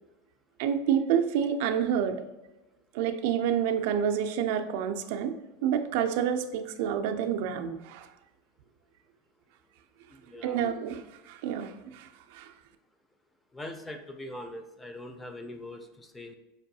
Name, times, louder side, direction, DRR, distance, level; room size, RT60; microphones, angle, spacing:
voice 1, 0.6-2.2 2.9-5.3 5.6-8.1 10.4-12.5, right 8 dB, 65° right, 7 dB, 0.3 m, -28 dB
voice 2, 10.1-10.6 13.5-16.3, left 1 dB, 10° left, 6 dB, 0.4 m, -42 dB
5.2 x 2.3 x 2.7 m, 1.0 s
supercardioid pair, 140°, 0 cm